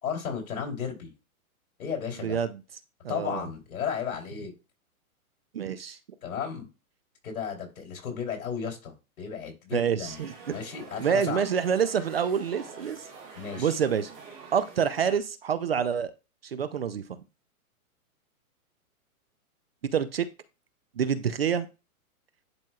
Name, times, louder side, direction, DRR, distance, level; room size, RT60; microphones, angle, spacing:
voice 1, 0.0-1.1 1.8-2.4 3.1-4.5 6.2-6.7 7.2-10.2 10.5-11.4 13.3-13.7, left 7 dB, 70° left, 1 dB, 3.4 m, -34 dB
voice 2, 2.2-2.6 3.0-3.5 5.5-6.0 9.7-10.6 11.0-13.0 13.6-14.1 14.5-16.1 16.4-17.2 19.9-20.3 21.0-21.7, right 7 dB, 45° right, 13 dB, 0.5 m, -27 dB
sound 1, 10.0-15.2, right 4 dB, 15° right, 2.7 m, -47 dB
10.5 x 4.3 x 2.4 m, 0.29 s
hypercardioid pair, 175°, 43 cm